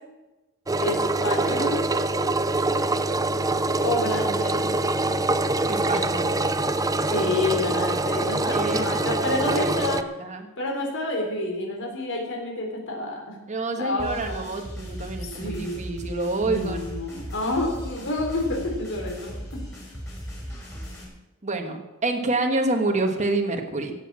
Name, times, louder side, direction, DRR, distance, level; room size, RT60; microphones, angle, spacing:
Engine, 0.7-10.0, right 2 dB, 15° right, 0.6 m, -24 dB
voice 1, 0.8-1.8 3.8-4.7 7.0-10.0 10.6-13.4 13.8-14.5 15.2-15.7 16.4-19.6, left 2 dB, 60° left, 1 dB, 3.9 m, -28 dB
voice 2, 5.7-6.3 8.5-8.8 9.4-10.5 13.5-16.8 21.4-23.9, right 2 dB, 35° right, 4 dB, 1.4 m, -27 dB
sound 1, 14.0-21.0, equal, 15° left, 5.0 m, -37 dB
16.0 x 8.2 x 7.4 m, 1.1 s
head